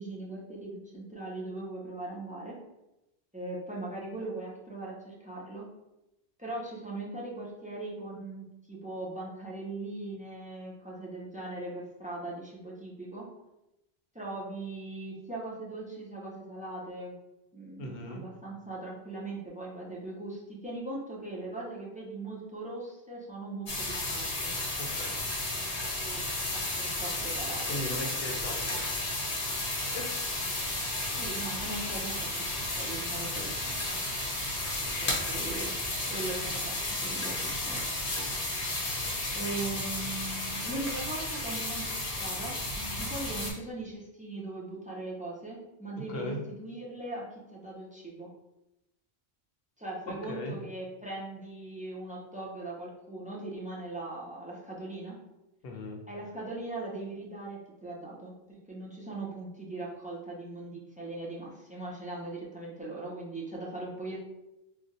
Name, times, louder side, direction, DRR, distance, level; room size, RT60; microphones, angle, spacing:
voice 1, 0.0-2.6 3.3-5.6 6.4-13.3 14.1-17.2 17.5-24.5 26.0-26.2 26.5-27.8 31.2-33.3 33.6-34.0 35.0-35.7 36.1-37.8 39.3-48.3 49.8-55.2 56.1-64.2, right 2 dB, 10° right, -4 dB, 0.4 m, -40 dB
voice 2, 17.8-18.2 24.8-25.2 27.7-29.1 29.9-30.0 33.3-33.5 34.8-35.4 39.0-39.2 46.1-46.4 50.3-50.5 55.6-56.0, left 1 dB, 75° left, 2 dB, 0.8 m, -39 dB
sound 1, 23.7-43.5, left 2 dB, 45° left, 0.7 m, -33 dB
2.5 x 2.2 x 4.0 m, 0.94 s
omnidirectional pair, 1.0 m